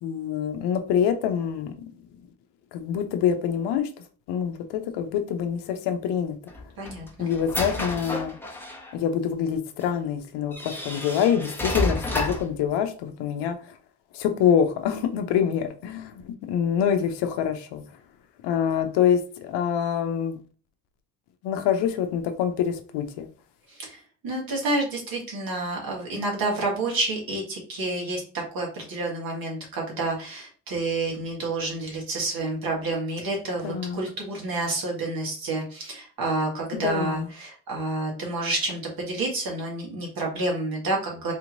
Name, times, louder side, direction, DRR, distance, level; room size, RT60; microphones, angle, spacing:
voice 1, 0.0-1.9 2.7-3.9 4.3-6.4 7.2-8.3 8.9-13.6 14.1-17.8 18.4-20.4 21.4-23.3 33.6-34.0 36.7-37.3, left 8 dB, 80° left, 0.7 m, -25 dB
sound 1, 6.5-8.9 9.8-9.9 10.5-12.5, left 1 dB, 5° left, 1.2 m, -30 dB
voice 2, 6.8-7.3 23.7-28.2 28.5-41.3, right 2 dB, 60° right, 2.0 m, -29 dB
4.3 x 2.9 x 2.6 m
supercardioid pair, 60°, 40 cm